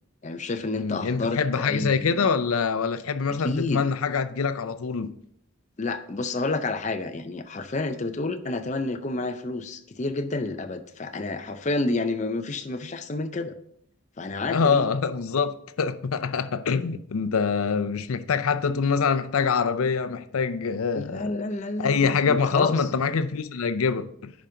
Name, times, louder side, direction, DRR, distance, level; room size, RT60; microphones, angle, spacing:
voice 1, 0.2-2.3 3.4-3.8 5.8-13.6 14.2-14.9 20.9-22.9, left 2 dB, 35° left, 0.5 m, -30 dB
voice 2, 0.7-5.1 14.5-21.3 21.8-24.3, left 5 dB, 80° left, 0.5 m, -25 dB
10.0 x 5.2 x 3.8 m
head